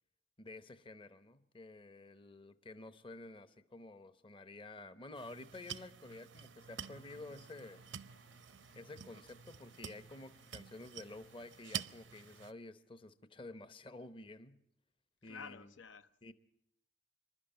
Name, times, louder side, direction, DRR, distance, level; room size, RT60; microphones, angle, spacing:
voice 1, 0.4-7.8 8.7-14.6 15.2-15.7 16.2-16.3, left 2 dB, 30° left, 11 dB, 0.8 m, -51 dB
sound 1, 5.1-12.5, right 9 dB, 90° right, 0.7 m, -49 dB
Stream, 6.8-12.5, left 3 dB, 50° left, 1.2 m, -71 dB
voice 2, 15.2-16.3, left 5 dB, 85° left, 10 dB, 0.8 m, -51 dB
26.5 x 12.0 x 8.9 m, 0.77 s
head